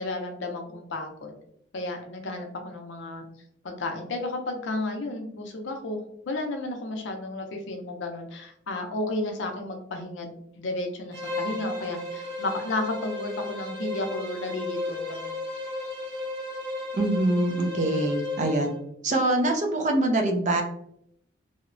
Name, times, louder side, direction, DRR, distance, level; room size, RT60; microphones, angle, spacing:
voice 1, 0.0-1.3 1.7-3.2 3.6-15.4, left 2 dB, 65° left, 4 dB, 0.5 m, -33 dB
Bowed string instrument, 11.1-18.8, left 2 dB, 65° right, 1.1 m, -34 dB
voice 2, 16.9-18.7 19.0-20.6, right 1 dB, 35° right, 3 dB, 0.4 m, -24 dB
2.7 x 2.0 x 2.5 m, 0.71 s
head